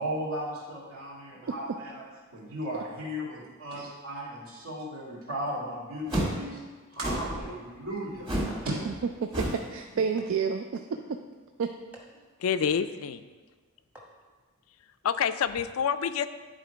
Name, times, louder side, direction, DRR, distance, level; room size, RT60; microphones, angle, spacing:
voice 1, 0.0-2.0 2.3-6.6 6.9-8.3 8.6-9.0 9.9-10.0, equal, 85° right, -5 dB, 2.4 m, -36 dB
sound 1, 6.1-6.4 7.0-7.3 8.3-8.6 8.9-9.0 9.3-9.6, right 1 dB, 25° right, 1.5 m, -30 dB
sound 2, 7.1-8.8 10.2-10.3 11.9-12.0 14.0-14.1 15.4-15.6, equal, 10° right, 1.0 m, -44 dB
voice 2, 9.2-11.2 11.6-11.7, right 6 dB, 65° right, 6 dB, 0.4 m, -30 dB
voice 3, 12.4-13.2 15.0-16.3, left 7 dB, 75° left, 12 dB, 0.4 m, -27 dB
10.5 x 3.8 x 4.5 m, 1.4 s
head